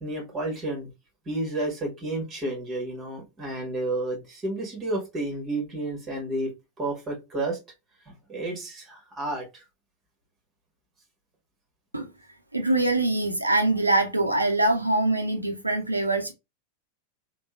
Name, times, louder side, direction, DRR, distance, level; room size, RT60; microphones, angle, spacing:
voice 1, 0.0-0.9 1.2-6.5 6.8-7.6 8.0-9.6, right 2 dB, 25° right, 1.6 m, -31 dB
voice 2, 12.5-16.3, right 2 dB, 85° right, 0.6 m, -23 dB
3.5 x 2.3 x 2.3 m
figure-of-eight pair, 90°, 0 cm